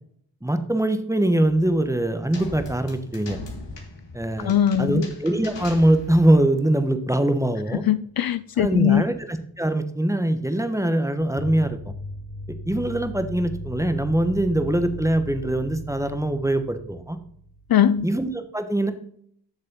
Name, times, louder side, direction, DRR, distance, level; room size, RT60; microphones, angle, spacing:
voice 1, 0.4-3.4 4.1-7.8 8.6-11.9 12.7-17.2 18.0-18.9, right 1 dB, 5° right, 1.2 m, -22 dB
sound 1, 1.6-2.9 3.2-3.3 3.7-8.1 11.2-18.2, right 1 dB, 40° left, 1.4 m, -39 dB
sound 2, 2.3-6.4, left 2 dB, 80° left, 2.0 m, -39 dB
voice 2, 4.4-5.1 7.8-9.0 17.7-18.1, left 10 dB, 60° left, 0.5 m, -20 dB
8.1 x 6.5 x 3.7 m
cardioid pair, 45°, 42 cm